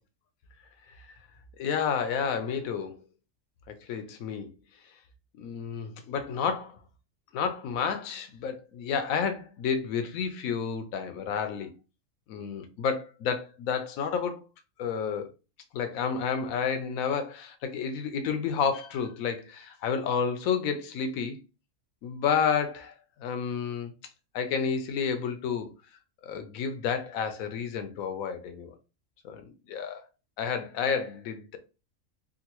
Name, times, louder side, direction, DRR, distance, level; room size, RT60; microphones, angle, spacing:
voice 1, 1.6-2.9 3.7-4.5 5.4-6.8 7.3-11.7 12.3-14.4 14.8-15.3 15.7-21.4 22.0-23.9 24.3-25.7 26.2-28.7 29.2-30.0 30.4-31.6, left 6 dB, 85° left, 1.0 m, -30 dB
3.7 x 2.2 x 2.9 m
omnidirectional pair, 1.4 m